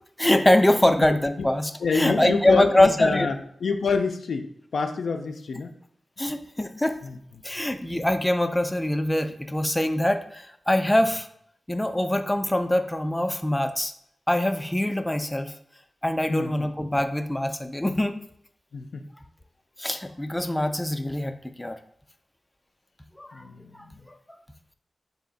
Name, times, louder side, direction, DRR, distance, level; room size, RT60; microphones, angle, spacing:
voice 1, 0.2-3.3 6.2-7.0 7.4-11.3 11.7-13.9 14.3-15.5 16.0-18.1 19.8-21.8 23.2-23.5 23.7-24.1, left 1 dB, 10° left, 7 dB, 0.4 m, -23 dB
voice 2, 1.8-5.7 7.0-7.2 16.3-16.7 18.7-19.0 23.3-24.0, left 5 dB, 85° left, 5 dB, 0.4 m, -27 dB
3.3 x 2.8 x 3.9 m, 0.68 s
cardioid pair, 55°, 0 cm